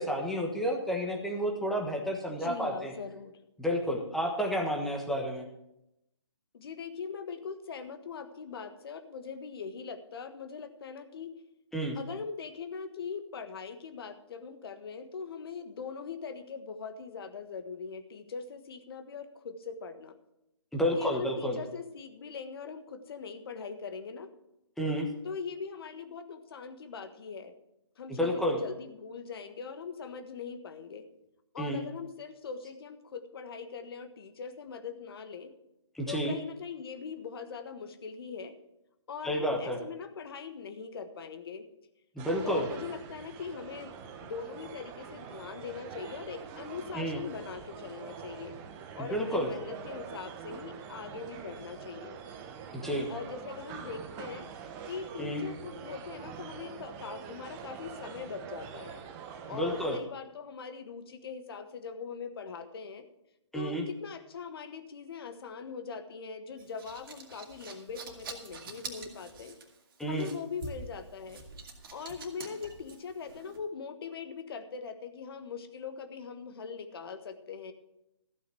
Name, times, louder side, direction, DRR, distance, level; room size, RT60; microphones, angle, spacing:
voice 1, 0.0-2.9 3.6-5.4 11.7-12.0 20.7-21.6 24.8-25.1 28.1-28.6 31.6-31.8 35.9-36.4 39.2-39.8 42.1-42.7 46.9-47.2 49.0-49.5 52.7-53.1 55.2-55.4 59.5-60.0 63.5-63.8 70.0-70.3, equal, ahead, 1 dB, 1.3 m, -30 dB
voice 2, 2.3-3.4 6.5-11.4 11.9-20.1 20.8-24.3 25.2-27.5 28.0-31.0 31.5-35.5 36.1-38.5 39.1-41.6 42.4-43.9 44.2-48.6 48.9-52.2 53.1-54.5 54.9-59.0 59.5-63.1 63.5-69.5 70.1-71.4 71.9-77.7, left 5 dB, 55° left, 9 dB, 1.5 m, -41 dB
sound 1, 42.2-60.0, right 7 dB, 20° right, 1.0 m, -45 dB
sound 2, 66.6-73.6, right 3 dB, 45° right, 2.5 m, -46 dB
14.5 x 6.2 x 7.7 m, 0.86 s
hypercardioid pair, 150°, 15 cm